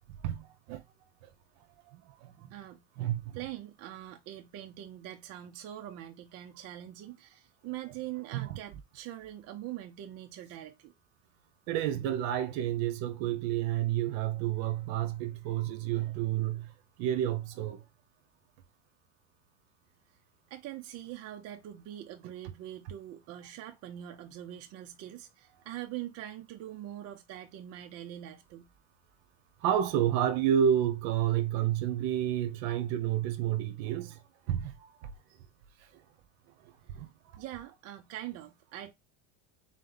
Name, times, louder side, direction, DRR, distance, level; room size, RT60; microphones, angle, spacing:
voice 1, 0.2-0.8 1.9-2.3 3.0-3.4 8.3-8.6 11.7-16.7 17.0-17.8 29.6-34.2 34.5-35.1 36.9-37.4, right 10 dB, 70° right, 1.0 m, -30 dB
voice 2, 2.4-2.8 3.3-10.9 20.5-28.7 37.4-38.9, right 13 dB, 40° right, 0.6 m, -43 dB
3.9 x 3.2 x 3.9 m
cardioid pair, 145°, 39 cm